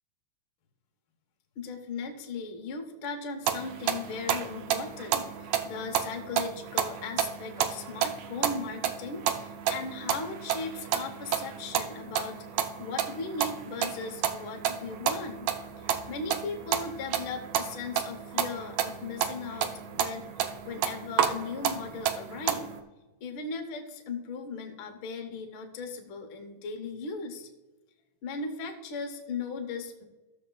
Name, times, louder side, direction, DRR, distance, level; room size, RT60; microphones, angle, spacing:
voice 1, 1.6-15.5 15.8-22.7 23.2-27.5 28.2-30.1, left 4 dB, 70° left, 4 dB, 1.2 m, -38 dB
sound 1, 3.5-22.8, right 9 dB, 75° right, 1.6 m, -31 dB
14.0 x 7.7 x 2.3 m, 1.1 s
omnidirectional pair, 3.4 m